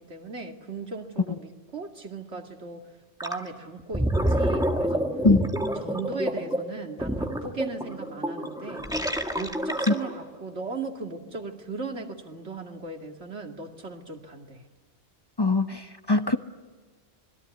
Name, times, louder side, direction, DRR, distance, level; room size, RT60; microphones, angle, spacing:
voice 1, 0.0-2.9 3.2-5.1 5.8-8.9 9.4-14.6, right 3 dB, 90° right, 2.7 m, -37 dB
Gurgling, 3.2-3.4 3.8-10.3, right 1 dB, 5° right, 1.9 m, -28 dB
voice 2, 15.4-16.4, left 3 dB, 25° left, 0.9 m, -22 dB
26.5 x 21.5 x 9.5 m
omnidirectional pair, 1.1 m